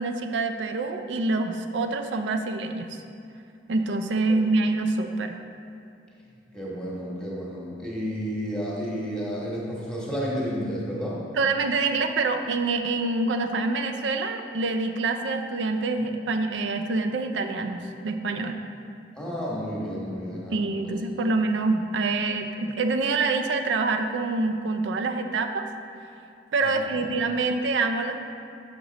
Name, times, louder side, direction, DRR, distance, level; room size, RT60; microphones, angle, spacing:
voice 1, 0.0-3.0 3.7-5.4 11.4-18.6 20.5-25.7 26.5-28.2, right 3 dB, 85° right, 6 dB, 0.4 m, -26 dB
voice 2, 6.5-11.3 19.1-20.9 21.2-21.3 26.6-27.0, equal, 5° left, -5 dB, 1.2 m, -32 dB
6.4 x 5.9 x 3.9 m, 2.6 s
head